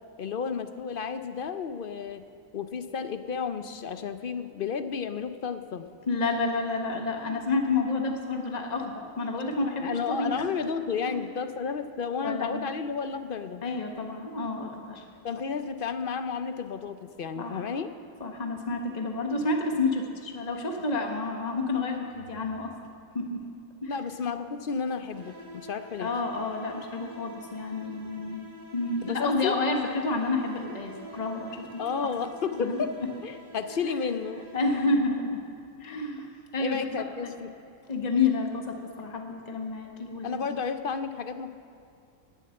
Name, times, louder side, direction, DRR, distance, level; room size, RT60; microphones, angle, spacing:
voice 1, 0.2-2.2 2.5-5.8 9.8-13.6 15.2-17.9 23.9-26.1 29.0-29.6 31.8-33.0 33.2-34.5 36.6-37.5 40.2-41.5, left 6 dB, 50° left, 9 dB, 0.7 m, -32 dB
voice 2, 6.1-10.4 11.0-11.2 12.2-12.7 13.6-15.0 17.3-17.6 18.2-22.7 23.1-23.4 23.8-24.0 26.0-28.5 28.7-31.8 32.6-32.8 34.5-35.4 35.8-36.8 37.2-37.3 37.9-40.5, left 3 dB, 30° left, 2 dB, 1.4 m, -29 dB
sound 1, 25.1-35.3, right 2 dB, 30° right, 1.1 m, -47 dB
19.0 x 7.4 x 7.7 m, 2.4 s
omnidirectional pair, 1.4 m